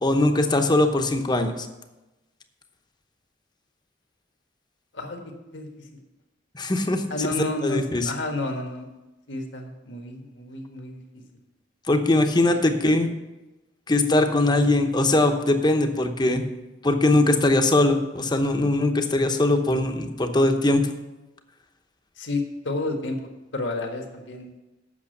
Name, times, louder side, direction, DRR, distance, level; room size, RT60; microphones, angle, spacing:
voice 1, 0.0-1.7 6.5-7.0 7.6-8.1 11.9-13.1 13.9-16.4 16.8-20.8, left 2 dB, 25° left, 6 dB, 0.9 m, -21 dB
voice 2, 7.1-8.9 9.3-11.2 22.2-23.2 23.5-24.5, left 2 dB, 75° left, 2 dB, 1.6 m, -30 dB
8.5 x 6.2 x 7.8 m, 1.0 s
head